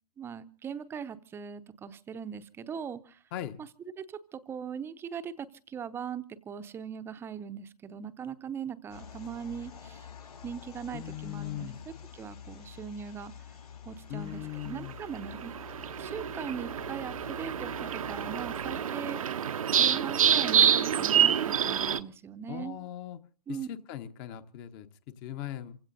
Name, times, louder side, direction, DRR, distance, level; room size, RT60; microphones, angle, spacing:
voice 1, 0.2-3.2 4.0-10.1 10.4-13.3 13.9-15.5 16.0-19.2 19.7-21.4 21.6-22.8 23.5-23.7, right 7 dB, 10° right, 12 dB, 0.8 m, -40 dB
voice 2, 3.3-3.6 10.9-11.8 14.1-15.0 22.5-23.2 23.5-25.8, left 12 dB, 30° left, 11 dB, 1.1 m, -39 dB
sound 1, 8.9-18.8, left 8 dB, 65° left, 5.2 m, -48 dB
sound 2, 15.2-22.0, right 8 dB, 55° right, 0.9 m, -27 dB
28.0 x 16.0 x 2.7 m, 0.42 s
figure-of-eight pair, 120°, 21 cm